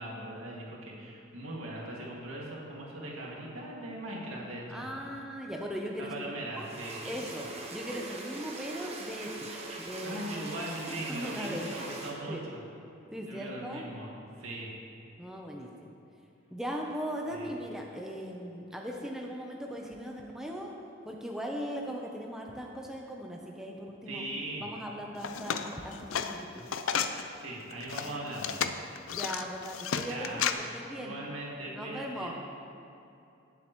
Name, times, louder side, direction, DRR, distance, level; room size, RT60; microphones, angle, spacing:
voice 1, 0.0-4.9 6.0-7.0 10.0-12.4 13.3-14.1 14.4-14.7 17.3-17.5 24.1-24.7 27.4-28.6 30.1-30.5 31.0-32.3, right 1 dB, 90° right, -4 dB, 2.2 m, -39 dB
voice 2, 4.7-6.1 6.6-6.7 7.1-7.5 7.7-9.5 9.8-10.2 11.1-11.7 12.3-12.4 13.1-13.8 15.2-15.9 16.5-20.7 21.0-24.2 24.6-26.7 28.0-28.3 29.1-31.1 31.7-32.3, equal, 5° right, -1 dB, 0.7 m, -39 dB
sound 1, 6.6-12.1, right 2 dB, 30° right, 1.0 m, -41 dB
sound 2, 25.2-27.2 27.7-30.5, left 7 dB, 80° left, 0.5 m, -32 dB
17.5 x 7.5 x 3.1 m, 2.7 s
head